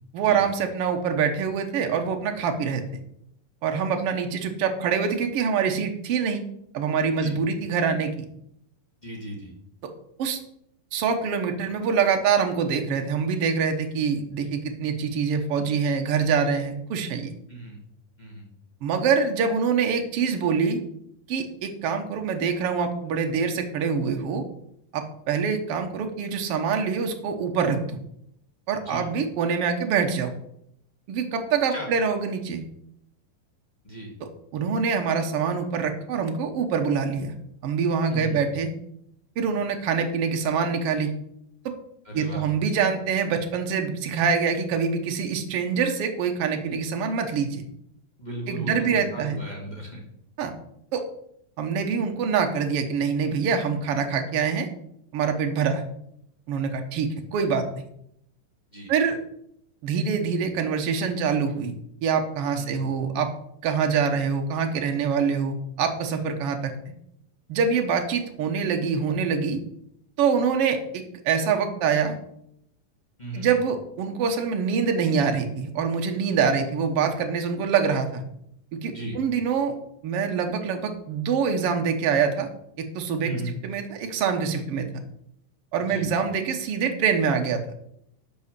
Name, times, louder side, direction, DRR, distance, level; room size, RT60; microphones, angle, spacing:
voice 1, 0.1-2.8 3.6-6.4 6.7-8.1 10.2-10.4 10.9-17.3 18.8-20.8 21.3-24.4 24.9-28.0 28.7-30.3 31.1-32.6 34.5-37.3 37.6-38.7 39.4-41.1 42.1-47.6 48.5-49.4 50.4-50.5 50.9-51.0 51.6-54.7 55.1-55.8 56.5-57.8 58.9-59.2 59.8-61.7 62.0-63.3 63.6-66.7 67.5-69.6 70.2-72.1 73.3-78.2 78.7-79.7 80.0-82.5 82.8-83.3 83.6-84.9 85.7-87.6, right 6 dB, 70° right, 5 dB, 1.4 m, -25 dB
voice 2, 9.0-9.5 17.5-17.8 18.2-18.4 28.8-29.0 31.7-31.9 33.8-34.1 38.1-38.4 42.0-42.4 48.2-50.0 58.7-58.9 62.6-62.8 73.2-73.5 78.9-79.2 83.2-83.5 85.8-86.1, right 1 dB, 20° left, -2 dB, 1.2 m, -36 dB
8.5 x 5.5 x 6.6 m, 0.74 s
omnidirectional pair, 4.0 m